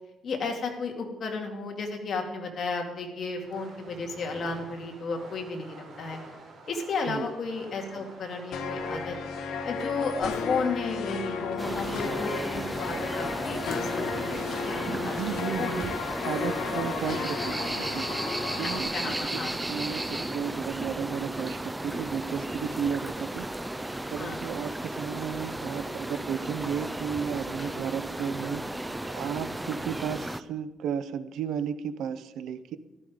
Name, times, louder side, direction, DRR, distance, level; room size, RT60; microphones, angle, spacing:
voice 1, 0.2-6.2 6.7-9.2 9.6-15.9 18.9-19.6 24.2-24.4 27.6-27.7, left 4 dB, 40° left, 2 dB, 2.3 m, -33 dB
Fireworks, 3.4-20.6, right 3 dB, 50° right, 4.7 m, -48 dB
sound 1, 8.5-18.8, left 5 dB, 80° left, 1.6 m, -33 dB
sound 2, 11.6-30.4, right 1 dB, 5° right, 0.4 m, -34 dB
voice 2, 14.9-16.0 16.2-18.3 18.6-19.4 19.7-23.5 24.1-28.8 29.1-32.8, right 7 dB, 70° right, 13 dB, 0.8 m, -34 dB
14.5 x 13.0 x 5.1 m, 1.0 s
cardioid pair, 175°, 0 cm